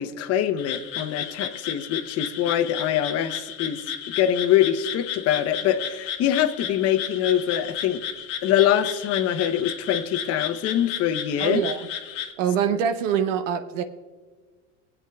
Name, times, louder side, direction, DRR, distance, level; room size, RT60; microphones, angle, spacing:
voice 1, 0.0-3.8 4.2-8.0 8.4-11.6, left 10 dB, 40° left, 10 dB, 0.8 m, -24 dB
Frog, 0.6-12.3, left 9 dB, 75° left, 1.4 m, -33 dB
voice 2, 11.4-11.8 12.4-13.8, right 8 dB, 85° right, 9 dB, 0.8 m, -24 dB
23.0 x 8.2 x 2.3 m, 1.4 s
supercardioid pair, 115°, 37 cm